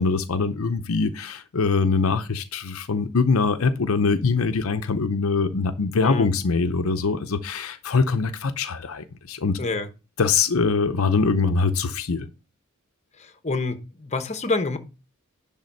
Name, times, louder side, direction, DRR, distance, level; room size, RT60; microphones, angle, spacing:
voice 1, 0.0-9.6 10.2-12.3, left 4 dB, 80° left, 0.7 m, -23 dB
voice 2, 13.2-14.8, left 3 dB, 35° left, 1.0 m, -27 dB
10.5 x 3.6 x 5.3 m
head